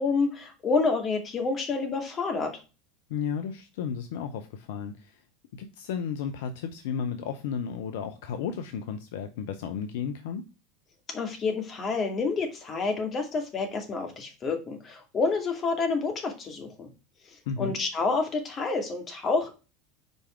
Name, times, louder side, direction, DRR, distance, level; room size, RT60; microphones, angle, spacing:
voice 1, 0.0-2.6 11.1-16.9 17.3-19.5, left 4 dB, 35° left, 4 dB, 2.3 m, -28 dB
voice 2, 3.1-5.2 5.5-10.4 17.5-17.7, left 7 dB, 70° left, 8 dB, 0.6 m, -33 dB
5.3 x 4.8 x 4.4 m, 0.31 s
hypercardioid pair, 80°, 0 cm